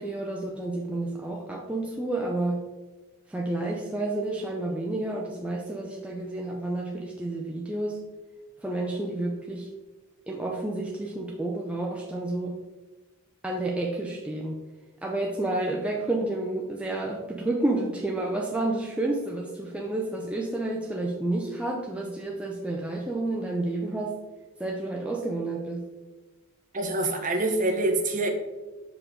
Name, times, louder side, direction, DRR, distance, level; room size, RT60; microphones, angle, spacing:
voice 1, 0.0-2.6 3.3-8.0 8.6-9.7 10.3-12.6 13.4-14.6 15.0-24.1 24.6-25.8, right 2 dB, 5° right, -1 dB, 0.4 m, -30 dB
voice 2, 26.7-28.3, right 2 dB, 35° right, 3 dB, 0.9 m, -25 dB
6.5 x 4.9 x 3.6 m, 1.2 s
head